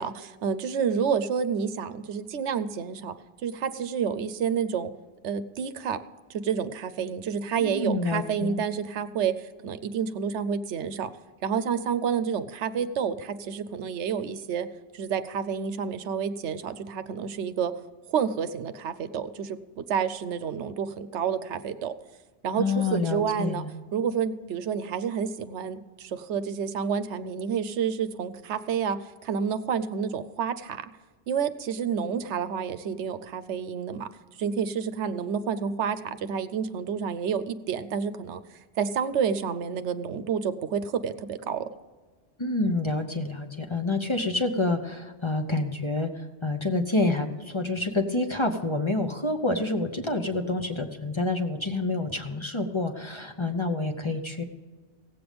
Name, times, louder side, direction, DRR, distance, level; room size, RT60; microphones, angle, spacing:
voice 1, 0.0-3.1 3.4-4.9 5.2-6.0 6.3-11.1 11.4-14.7 14.9-17.7 18.1-21.9 22.4-23.6 23.9-29.0 29.2-30.9 31.3-34.1 34.4-38.4 38.8-41.7, right 7 dB, 80° right, 11 dB, 1.0 m, -29 dB
voice 2, 7.6-8.6 22.6-23.7 42.4-54.4, left 2 dB, 25° left, 5 dB, 0.9 m, -28 dB
17.0 x 7.8 x 5.1 m, 1.4 s
omnidirectional pair, 1.2 m